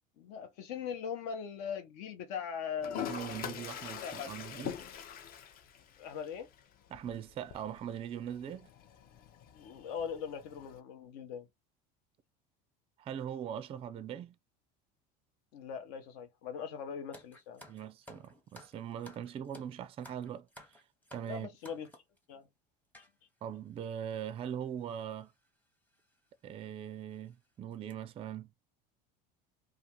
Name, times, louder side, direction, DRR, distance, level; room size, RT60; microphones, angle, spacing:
voice 1, 0.2-4.3 6.0-6.5 9.5-11.5 15.5-17.7 21.3-21.9 22.3-22.5, left 7 dB, 75° left, 0.8 m, -41 dB
Toilet flush, 2.8-10.8, left 9 dB, 45° left, 0.5 m, -45 dB
voice 2, 2.8-4.7 6.9-8.7 13.0-14.3 17.7-20.5 21.1-21.5 23.4-25.3 26.4-28.5, right 9 dB, 30° right, 0.3 m, -41 dB
sound 1, 17.1-22.2 22.9-23.1 23.8-23.9 24.1-24.3 25.3-25.5 25.9-26.0 26.6-26.7 27.1-27.3 27.7-27.9, left 1 dB, 10° left, 0.7 m, -55 dB
2.5 x 2.4 x 2.9 m
supercardioid pair, 105°, 21 cm